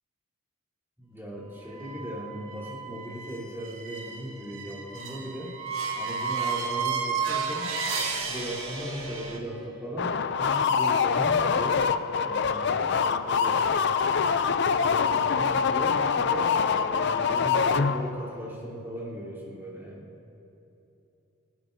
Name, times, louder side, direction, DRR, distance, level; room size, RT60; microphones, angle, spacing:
voice 1, 1.0-5.6 6.0-7.8 8.3-11.9 12.2-20.1, equal, 10° right, -8 dB, 3.6 m, -37 dB
sound 1, 1.7-9.4, right 5 dB, 80° right, 1.7 m, -33 dB
sound 2, 10.0-18.3, left 6 dB, 50° left, 0.4 m, -25 dB
28.5 x 12.0 x 2.7 m, 2.9 s
head